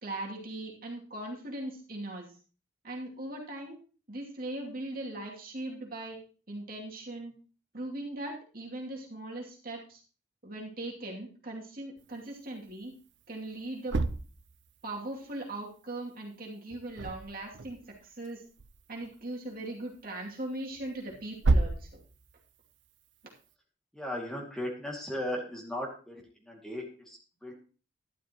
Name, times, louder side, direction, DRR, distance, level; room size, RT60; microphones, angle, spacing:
voice 1, 0.0-2.4 2.8-3.8 4.1-6.2 6.5-7.3 7.7-10.0 10.4-12.9 13.3-14.0 14.8-18.4 18.9-22.0, right 1 dB, 50° right, -1 dB, 2.6 m, -39 dB
sound 1, 12.0-12.1 12.7-12.8 13.6-14.9 16.7-18.3 18.6-19.2 19.9-20.0 20.7-22.3, right 2 dB, 80° right, 0.7 m, -31 dB
voice 2, 23.9-27.5, left 1 dB, ahead, -2 dB, 2.3 m, -37 dB
12.0 x 11.5 x 3.0 m, 0.37 s
head